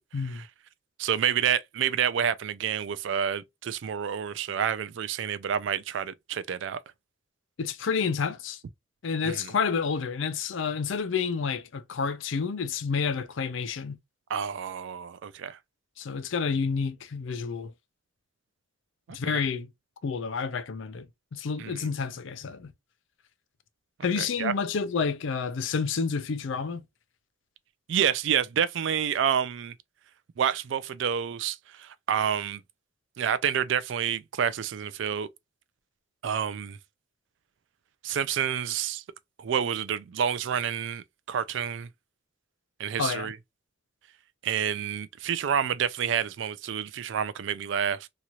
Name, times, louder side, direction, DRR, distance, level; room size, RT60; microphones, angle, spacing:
voice 1, 1.0-6.8 9.2-9.5 14.3-15.6 19.1-19.4 21.6-21.9 24.2-24.5 27.9-29.7 30.4-32.6 33.2-35.3 36.2-36.8 38.0-39.0 39.4-41.9 42.8-43.4 44.4-48.1, right 8 dB, 65° right, 0.3 m, -28 dB
voice 2, 7.6-8.6 9.0-14.0 16.0-17.7 19.1-19.7 20.0-22.7 24.0-26.8 43.0-43.3, left 5 dB, 70° left, 0.4 m, -29 dB
3.0 x 2.8 x 2.3 m
head